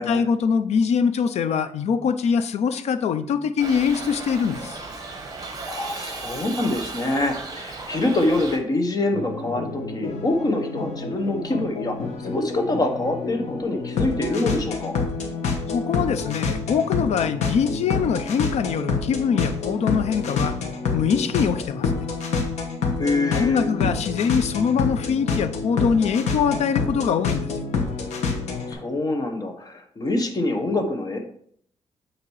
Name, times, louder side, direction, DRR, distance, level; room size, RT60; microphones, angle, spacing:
voice 1, 0.0-4.8 15.7-20.6 20.9-22.0 23.3-27.5, left 6 dB, 75° left, 10 dB, 0.5 m, -23 dB
Shout / Livestock farm animals working animals, 3.6-8.6, right 3 dB, 35° right, 1.1 m, -35 dB
voice 2, 5.6-15.0 23.0-23.7 28.7-31.2, left 2 dB, 35° left, 4 dB, 1.1 m, -25 dB
sound 1, 9.1-28.7, left 4 dB, 90° left, 1.2 m, -28 dB
8.5 x 2.9 x 4.7 m, 0.63 s
cardioid pair, 110°, 11 cm